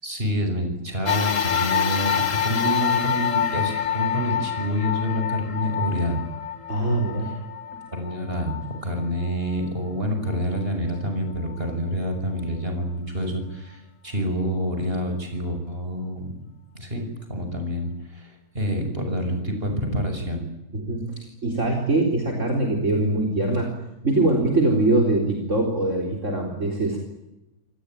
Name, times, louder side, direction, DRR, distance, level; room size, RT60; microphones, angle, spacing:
voice 1, 0.0-6.2 7.9-16.2 16.7-20.4, equal, 40° right, 5 dB, 6.1 m, -27 dB
sound 1, 1.1-9.7 10.3-10.4 11.5-11.6, left 9 dB, 60° left, 1.5 m, -27 dB
voice 2, 6.7-7.3 20.7-23.7 24.0-27.0, right 2 dB, 55° right, 1 dB, 4.4 m, -23 dB
27.5 x 19.0 x 9.2 m, 0.94 s
omnidirectional pair, 1.5 m